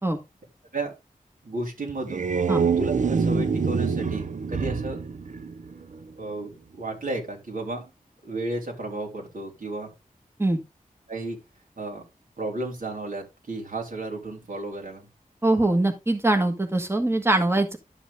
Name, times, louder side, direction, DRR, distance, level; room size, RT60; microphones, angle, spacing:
voice 1, 1.4-2.2 2.8-5.0 6.2-7.9 8.2-9.9 11.1-11.4 11.8-12.0 12.4-15.1, right 2 dB, 70° right, -1 dB, 3.7 m, -33 dB
sound 1, 1.9-6.1, right 5 dB, 55° right, 0.6 m, -26 dB
voice 2, 15.4-17.8, right 2 dB, 15° right, 5 dB, 1.4 m, -22 dB
11.5 x 6.0 x 3.5 m, 0.24 s
wide cardioid pair, 65°, 15 cm